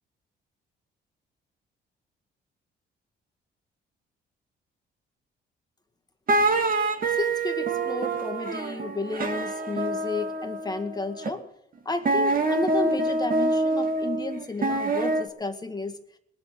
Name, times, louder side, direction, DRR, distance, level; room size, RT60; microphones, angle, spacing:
sound 1, 6.3-11.3 12.1-15.3, right 2 dB, 45° right, 2.8 m, -26 dB
voice 1, 7.2-11.4 11.9-16.0, left 3 dB, 20° left, 6 dB, 2.0 m, -32 dB
21.0 x 7.2 x 9.6 m, 0.76 s
cardioid pair, 90°, 20 cm